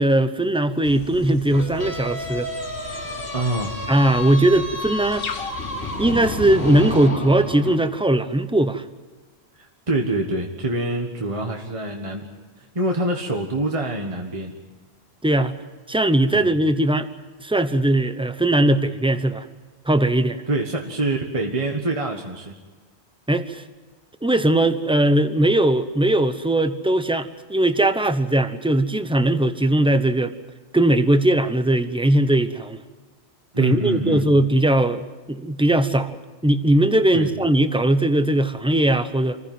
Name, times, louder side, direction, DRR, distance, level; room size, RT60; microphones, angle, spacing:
voice 1, 0.0-2.5 3.9-5.3 6.0-8.8 15.2-15.5 15.9-17.1 17.4-19.4 19.9-20.4 23.3-23.6 24.2-30.3 30.7-32.8 33.6-36.2 36.4-39.4, right 1 dB, 5° right, 10 dB, 0.9 m, -19 dB
sound 1, 0.8-7.1, left 6 dB, 60° left, 1.2 m, -39 dB
sound 2, 1.5-7.8, left 1 dB, 80° left, 5.7 m, -31 dB
voice 2, 3.3-3.8 9.6-12.3 12.6-14.5 16.3-16.6 20.5-22.5 33.5-34.3 37.1-37.3, right 2 dB, 30° right, 2 dB, 1.6 m, -25 dB
27.0 x 15.5 x 9.3 m, 1.3 s
omnidirectional pair, 1.1 m